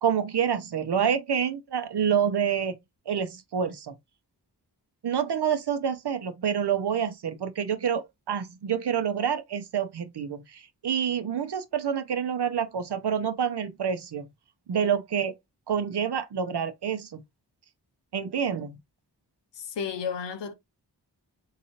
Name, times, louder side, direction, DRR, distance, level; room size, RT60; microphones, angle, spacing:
voice 1, 0.0-2.7 3.1-3.9 5.0-14.2 14.7-15.3 15.7-17.2 18.1-18.8, right 8 dB, 70° right, 0.7 m, -27 dB
voice 2, 19.6-20.5, left 6 dB, 90° left, 0.7 m, -32 dB
3.8 x 2.8 x 3.0 m
cardioid pair, 45°, 42 cm